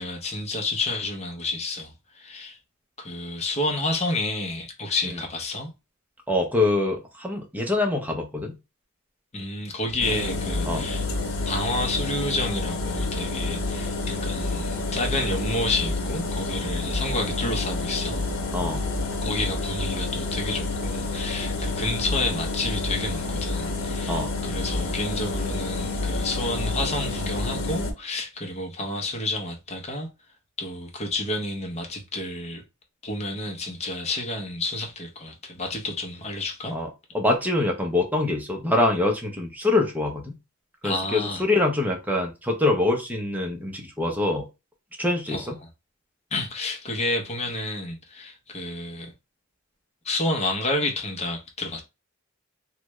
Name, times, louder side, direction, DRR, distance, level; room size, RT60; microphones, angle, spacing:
voice 1, 0.0-2.6 3.0-5.7 9.3-11.1 11.5-18.2 19.2-30.1 30.6-32.6 33.0-36.7 40.8-41.4 45.3-45.4 46.3-49.1 50.0-51.8, left 2 dB, 35° left, 0.9 m, -30 dB
voice 2, 6.3-8.6 10.7-10.9 18.5-18.8 24.1-24.3 36.7-36.9 37.1-40.4 40.8-44.4 45.0-45.5, left 2 dB, 10° right, 0.8 m, -24 dB
sound 1, 10.0-27.9, left 2 dB, 90° left, 0.9 m, -29 dB
3.3 x 2.4 x 3.1 m
head